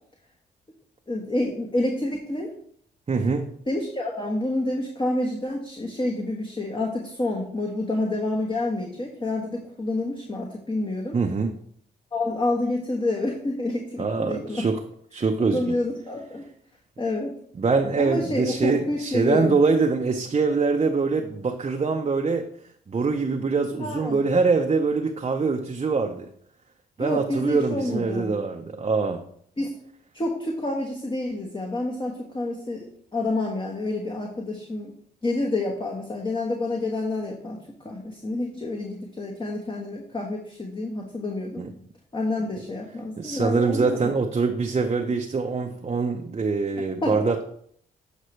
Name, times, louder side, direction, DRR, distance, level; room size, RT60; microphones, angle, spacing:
voice 1, 1.1-2.5 3.7-11.2 12.1-14.7 15.4-16.4 17.0-17.3 18.0-19.6 23.8-24.2 27.0-28.3 29.6-29.8 30.1-32.9 33.1-34.9 35.2-37.6 37.8-41.6 42.1-44.1 47.0-47.3, left 2 dB, 25° left, -1 dB, 1.3 m, -28 dB
voice 2, 3.1-3.5 11.1-11.5 14.0-14.8 15.1-15.7 17.6-22.5 22.9-26.3 27.0-29.2 41.6-41.7 43.2-47.4, right 4 dB, 35° right, 3 dB, 0.7 m, -24 dB
7.7 x 5.0 x 3.2 m, 0.65 s
supercardioid pair, 55°, 19 cm